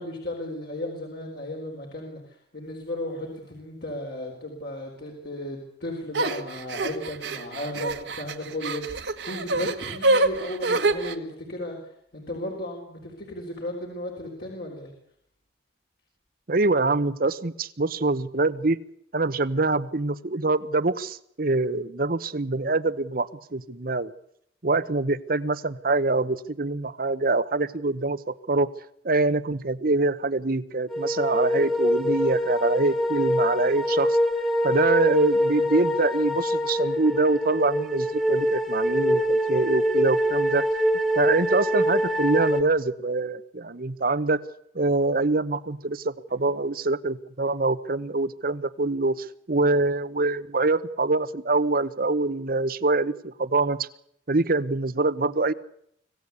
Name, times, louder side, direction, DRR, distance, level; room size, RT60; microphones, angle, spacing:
voice 1, 0.0-14.9, left 1 dB, 60° left, 0 dB, 4.4 m, -35 dB
sound 1, 6.1-11.2, right 2 dB, 70° right, 1.8 m, -26 dB
voice 2, 16.5-18.8 19.1-24.1 24.6-28.7 29.0-34.2 34.6-40.6 41.2-44.4 44.7-53.9 54.3-55.5, right 3 dB, 55° right, 14 dB, 1.0 m, -24 dB
sound 2, 30.9-42.6, equal, ahead, 1.9 m, -24 dB
25.5 x 16.5 x 8.3 m, 0.72 s
head